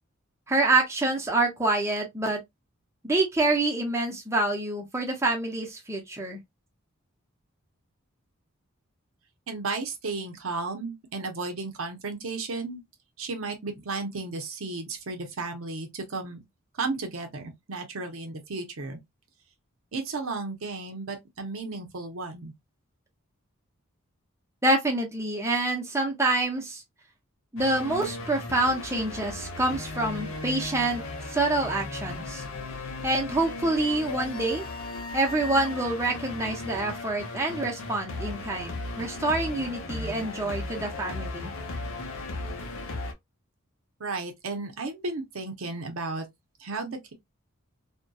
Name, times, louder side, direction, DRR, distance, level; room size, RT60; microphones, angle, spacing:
voice 1, 0.5-2.4 3.0-6.4 24.6-26.8 27.5-31.0 31.3-32.4 33.0-34.6 35.1-41.5, right 2 dB, 15° right, 0.5 m, -27 dB
voice 2, 9.5-12.8 13.2-16.4 16.7-19.0 19.9-22.5 44.0-46.3 46.6-47.1, right 3 dB, 75° right, 0.7 m, -34 dB
sound 1, 27.6-43.1, left 2 dB, 70° left, 0.6 m, -36 dB
2.7 x 2.1 x 2.2 m
head